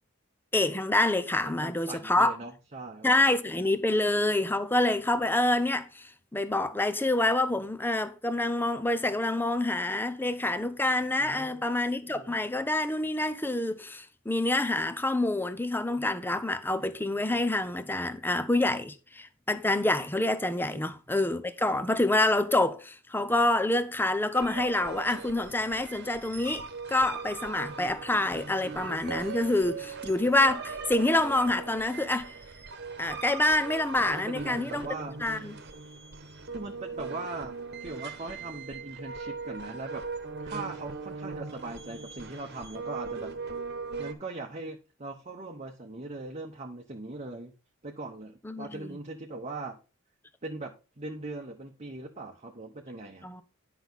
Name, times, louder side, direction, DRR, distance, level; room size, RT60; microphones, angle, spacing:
voice 1, 0.5-2.3 3.0-32.3 33.0-34.9 35.2-35.5 48.4-49.0 53.2-53.4, left 2 dB, 10° left, 0.8 m, -27 dB
voice 2, 1.4-3.1 11.2-11.7 12.1-12.3 20.7-20.8 34.1-35.2 36.5-40.0 40.4-43.3 44.0-47.5 47.8-49.8 50.4-53.3, right 2 dB, 35° right, 1.0 m, -40 dB
sound 1, 24.3-44.1, right 4 dB, 55° right, 1.3 m, -40 dB
sound 2, 29.1-33.2, right 9 dB, 90° right, 1.1 m, -43 dB
10.5 x 5.9 x 3.9 m
head